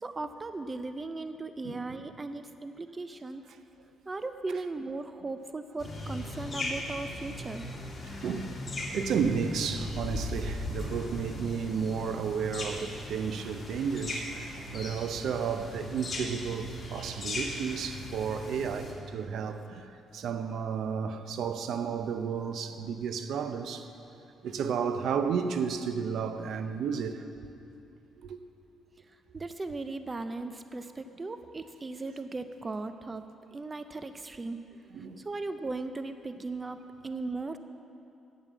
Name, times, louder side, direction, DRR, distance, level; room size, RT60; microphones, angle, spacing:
voice 1, 0.0-3.4 4.1-7.7 29.3-33.2 33.5-34.6 35.2-37.6, right 3 dB, 25° right, 9 dB, 0.5 m, -37 dB
sound 1, 5.8-18.9, left 1 dB, 30° left, 2.8 m, -38 dB
voice 2, 8.2-8.5 8.9-23.9 24.4-27.2 28.2-28.4 34.9-35.2, right 6 dB, 75° right, 9 dB, 0.6 m, -32 dB
9.0 x 8.5 x 7.2 m, 2.7 s
cardioid pair, 90°, 0 cm